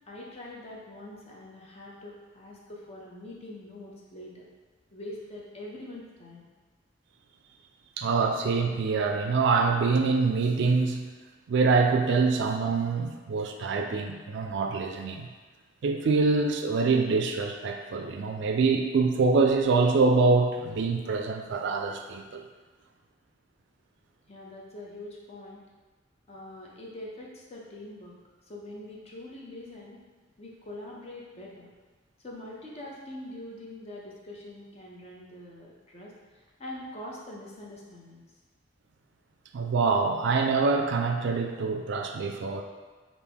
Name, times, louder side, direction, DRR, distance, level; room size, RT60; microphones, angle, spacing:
voice 1, 0.1-4.5 4.9-6.4 24.3-25.6 26.3-28.2 28.5-30.0 30.4-31.7 32.2-36.1 36.6-38.2, left 1 dB, 35° left, -3 dB, 0.6 m, -43 dB
voice 2, 8.0-11.1 11.5-15.3 15.8-22.4 39.5-42.6, right 4 dB, 65° right, 4 dB, 0.3 m, -25 dB
3.4 x 2.5 x 3.4 m, 1.3 s
head